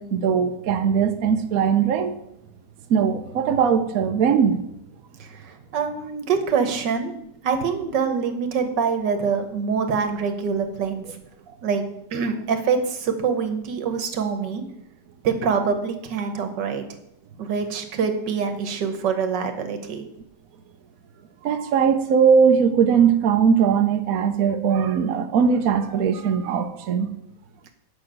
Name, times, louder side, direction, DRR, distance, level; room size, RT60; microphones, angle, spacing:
voice 1, 0.0-2.2 2.9-4.6 11.5-11.6 21.4-27.1, right 7 dB, 60° right, 7 dB, 1.1 m, -20 dB
voice 2, 5.2-7.1 7.4-11.1 11.6-11.8 12.1-14.6 15.2-16.8 17.4-20.0, right 6 dB, 85° right, 7 dB, 1.8 m, -25 dB
8.5 x 5.8 x 7.5 m, 0.78 s
omnidirectional pair, 1.9 m